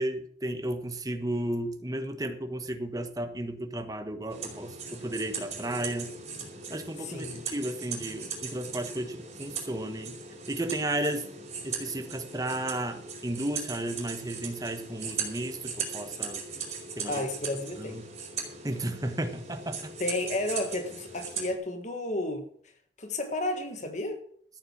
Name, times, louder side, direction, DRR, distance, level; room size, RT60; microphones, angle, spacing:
voice 1, 0.0-6.1 6.7-10.2 10.5-11.3 11.6-16.4 17.0-17.2 17.8-18.1 18.6-19.9, right 1 dB, 20° right, 1.4 m, -33 dB
sound 1, 4.3-21.5, right 5 dB, 40° right, 4.3 m, -39 dB
voice 2, 7.0-7.5 17.1-18.0 20.0-22.5 23.0-24.2, left 2 dB, 40° left, 1.5 m, -32 dB
13.5 x 9.0 x 6.2 m
head